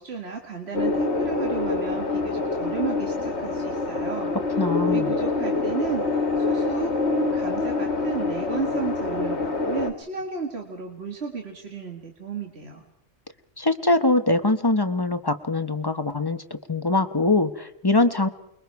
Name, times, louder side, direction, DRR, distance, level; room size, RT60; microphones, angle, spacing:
voice 1, 0.0-4.3 4.8-6.0 6.4-12.9, right 5 dB, 65° right, 2 dB, 2.2 m, -33 dB
sound 1, 0.7-9.9, left 3 dB, 70° left, 1.8 m, -26 dB
voice 2, 4.6-5.2 13.6-16.4 16.7-18.3, left 2 dB, 20° left, 9 dB, 0.8 m, -22 dB
29.0 x 22.0 x 4.7 m, 0.75 s
omnidirectional pair, 1.2 m